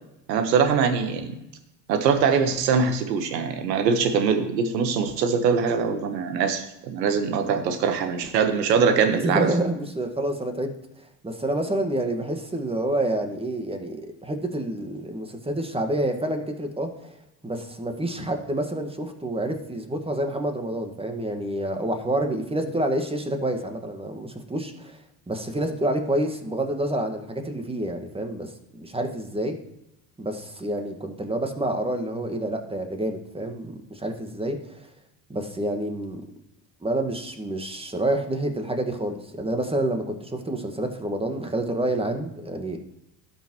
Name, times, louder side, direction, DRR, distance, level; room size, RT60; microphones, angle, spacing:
voice 1, 0.3-1.4 1.9-9.5, right 6 dB, 80° right, 9 dB, 1.3 m, -22 dB
voice 2, 9.2-10.7 11.2-17.1 17.4-25.0 25.3-29.6 30.2-34.8 35.3-36.2 36.8-42.8, right 1 dB, 10° right, 5 dB, 1.7 m, -28 dB
17.5 x 6.2 x 3.1 m, 0.91 s
hypercardioid pair, 70°, 49 cm